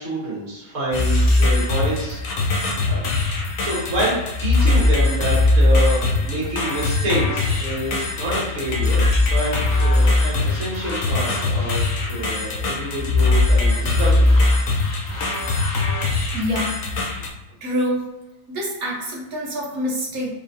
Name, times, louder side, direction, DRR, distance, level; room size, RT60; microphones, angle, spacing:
voice 1, 0.0-2.2 2.8-3.0 3.6-11.8 12.1-14.3, right 1 dB, 60° right, -6 dB, 1.9 m, -27 dB
sound 1, 0.9-17.3, left 2 dB, 70° left, 1.1 m, -20 dB
voice 2, 16.3-16.9 17.6-18.1 18.5-20.3, equal, 80° right, -3 dB, 1.6 m, -26 dB
3.9 x 3.6 x 2.7 m, 1.0 s
omnidirectional pair, 1.5 m